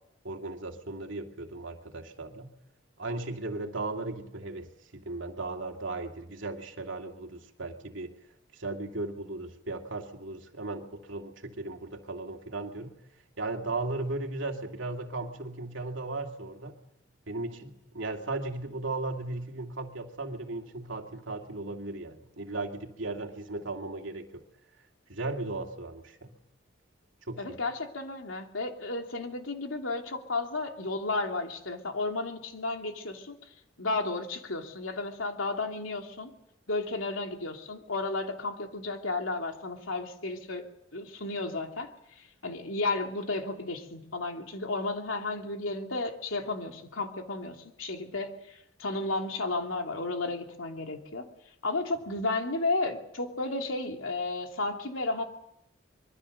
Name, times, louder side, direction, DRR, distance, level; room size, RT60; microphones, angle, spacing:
voice 1, 0.2-2.5 3.0-8.1 8.5-12.9 13.4-16.8 17.3-24.4 25.1-26.3 27.3-27.5, right 2 dB, 75° right, 3 dB, 2.5 m, -36 dB
voice 2, 27.4-33.3 33.8-36.3 36.7-40.6 40.9-41.9 42.4-48.3 48.8-51.3 51.6-55.2, left 2 dB, 90° left, 3 dB, 2.8 m, -33 dB
25.5 x 22.5 x 6.6 m, 0.85 s
head